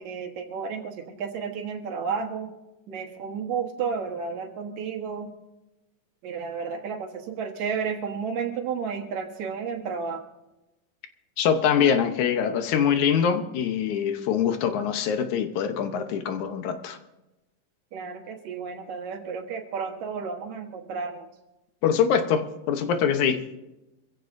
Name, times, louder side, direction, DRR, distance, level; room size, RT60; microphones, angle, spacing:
voice 1, 0.0-2.5 2.9-5.3 6.2-10.2 17.9-21.3, right 6 dB, 70° right, 3 dB, 2.7 m, -32 dB
voice 2, 11.4-17.0 21.8-23.4, left 7 dB, 80° left, 7 dB, 2.3 m, -24 dB
25.0 x 15.5 x 2.6 m, 1.0 s
omnidirectional pair, 3.4 m